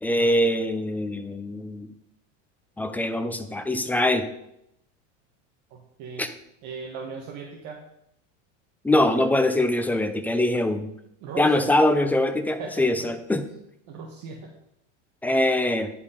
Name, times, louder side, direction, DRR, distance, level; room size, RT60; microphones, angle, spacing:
voice 1, 0.0-1.9 2.8-4.3 6.2-6.3 8.8-10.9 11.4-13.5 15.2-15.9, left 1 dB, 5° left, 8 dB, 0.6 m, -23 dB
voice 2, 5.7-6.2 6.6-7.8 11.2-11.6 12.6-13.1 13.9-14.5, right 5 dB, 55° right, 0 dB, 1.5 m, -38 dB
10.5 x 5.4 x 5.0 m, 0.78 s
supercardioid pair, 135°, 36 cm